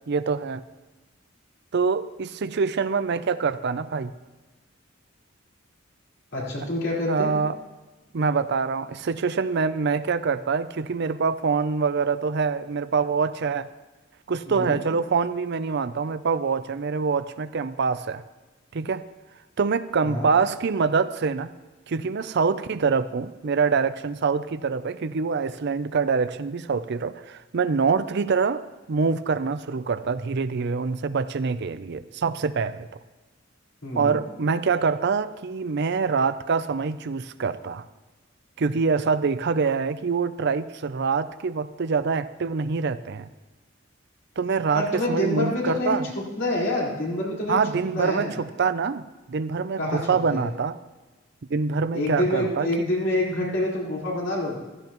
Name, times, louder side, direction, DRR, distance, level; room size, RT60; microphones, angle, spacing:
voice 1, 0.1-0.6 1.7-4.1 7.1-7.6 8.1-13.7 14.3-18.2 18.7-19.0 19.6-21.5 21.9-28.6 28.9-32.9 33.9-37.8 38.6-43.3 44.4-46.1 47.5-50.8 51.5-52.9, right 5 dB, 55° right, 13 dB, 0.5 m, -25 dB
voice 2, 6.3-7.3 14.5-14.8 20.0-20.3 33.8-34.2 44.7-47.6 47.9-48.4 49.8-50.4 51.9-54.6, left 1 dB, 65° left, -4 dB, 4.4 m, -27 dB
16.0 x 14.0 x 3.0 m, 1.2 s
head